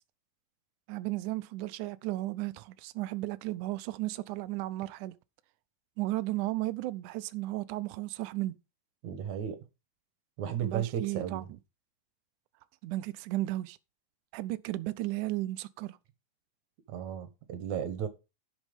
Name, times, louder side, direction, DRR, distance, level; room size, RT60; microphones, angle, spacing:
voice 1, 0.9-5.1 6.0-8.6 10.6-11.5 12.8-13.8 14.3-16.0, right 17 dB, 80° right, 1.8 m, -34 dB
voice 2, 9.0-9.6 10.4-11.5 16.9-18.1, right 9 dB, 60° right, 2.4 m, -34 dB
11.5 x 6.4 x 5.2 m
omnidirectional pair, 4.3 m